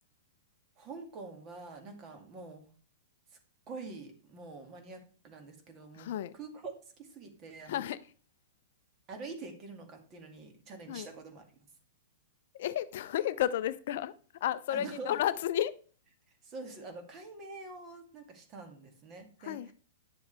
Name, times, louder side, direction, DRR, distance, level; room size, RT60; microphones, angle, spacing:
voice 1, 0.8-2.6 3.7-7.8 9.1-11.5 14.7-15.2 16.4-19.7, right 3 dB, 30° right, 2.3 m, -46 dB
voice 2, 6.0-6.3 7.7-8.0 10.9-11.1 12.5-14.1 14.4-15.7 19.4-19.7, left 11 dB, 60° left, 0.5 m, -32 dB
10.0 x 7.1 x 3.4 m
hypercardioid pair, 110°, 0 cm